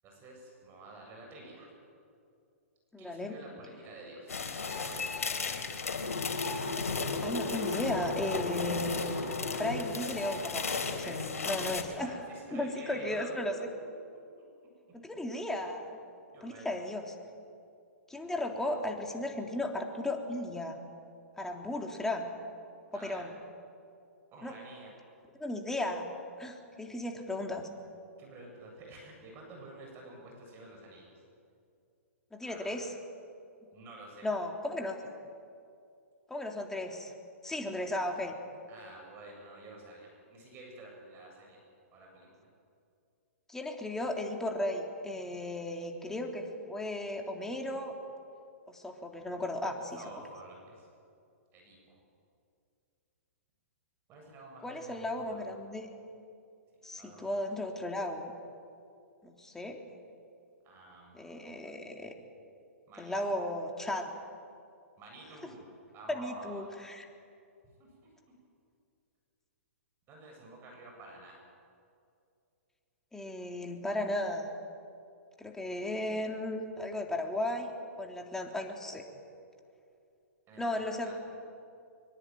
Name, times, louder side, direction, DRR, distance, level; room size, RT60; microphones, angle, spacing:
voice 1, 0.0-1.7 3.0-5.3 11.9-13.4 14.4-14.5 16.3-16.8 22.9-23.3 24.3-25.0 28.2-31.1 32.4-32.8 33.7-34.3 38.7-41.6 41.9-42.5 50.0-50.9 51.5-52.0 54.1-55.4 56.9-57.4 60.6-61.8 62.9-63.3 65.0-66.7 67.6-68.1 70.1-71.4 80.5-81.1, right 2 dB, 30° right, 0 dB, 7.7 m, -50 dB
voice 2, 2.9-3.3 7.2-9.1 9.5-12.1 12.5-13.5 14.9-15.9 16.4-17.1 18.1-20.8 21.4-22.3 22.9-23.3 24.4-24.5 25.3-26.1 26.4-27.7 32.3-32.9 34.2-35.0 36.3-37.1 37.4-38.4 43.5-47.9 48.7-50.0 54.6-55.9 56.8-58.3 59.2-59.8 61.1-62.1 63.0-64.1 66.1-67.1 73.1-74.5 75.4-77.7 78.0-79.0 80.6-81.1, left 1 dB, 5° left, 2 dB, 3.3 m, -35 dB
sound 1, 4.3-11.8, left 4 dB, 75° left, 3.7 m, -34 dB
23.5 x 23.5 x 9.3 m, 2.5 s
hypercardioid pair, 120°, 8 cm